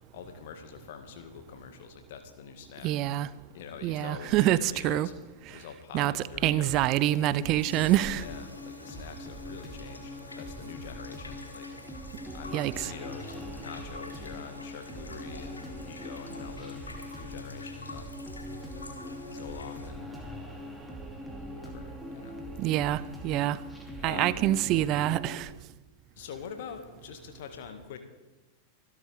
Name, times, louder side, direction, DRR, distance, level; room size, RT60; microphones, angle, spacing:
voice 1, 0.1-2.9 3.5-5.1 5.5-6.8 8.2-11.9 12.3-16.8 17.1-18.1 18.6-18.7 19.2-20.2 21.6-22.7 24.0-24.4 26.2-28.0, left 7 dB, 55° left, 1.8 m, -45 dB
voice 2, 2.8-3.3 3.8-5.1 5.5-5.6 5.9-8.3 12.5-12.9 22.6-23.6 24.0-25.5, right 14 dB, 40° right, 0.5 m, -26 dB
sound 1, 6.3-25.4, left 1 dB, ahead, 2.8 m, -42 dB
sound 2, 7.5-19.9, left 2 dB, 80° left, 1.9 m, -48 dB
25.5 x 12.0 x 3.5 m
figure-of-eight pair, 90°, 0 cm